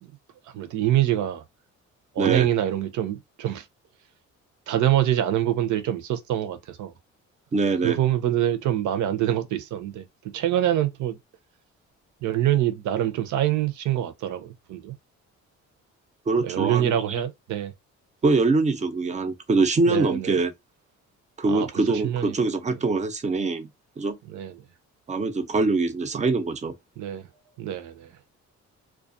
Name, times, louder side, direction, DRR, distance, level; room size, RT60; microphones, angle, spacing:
voice 1, 0.5-1.4 2.2-3.6 4.7-6.9 7.8-10.1 10.3-11.2 12.2-15.0 16.4-17.7 19.9-20.4 21.4-22.4 24.3-24.6 27.0-27.3 27.6-28.1, right 12 dB, 75° right, 0.7 m, -25 dB
voice 2, 7.5-8.0 16.3-17.0 18.2-20.5 21.4-23.7 24.0-24.2 25.1-26.7, right 3 dB, 25° right, 0.5 m, -23 dB
2.3 x 2.2 x 2.5 m
cardioid pair, 90°, 30 cm